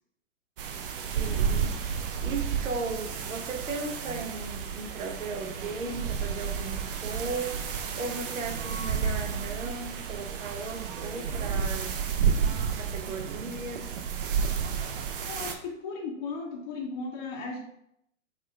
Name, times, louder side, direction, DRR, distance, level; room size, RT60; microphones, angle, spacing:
sound 1, 0.6-15.5, right 7 dB, 45° right, 0.4 m, -31 dB
voice 1, 1.2-1.8 2.2-7.5 8.0-12.0 12.8-13.9, right 3 dB, 90° right, 5 dB, 0.7 m, -36 dB
voice 2, 15.3-17.6, left 4 dB, 35° left, -2 dB, 0.6 m, -36 dB
5.0 x 2.4 x 2.2 m, 0.78 s
hypercardioid pair, 120°, 38 cm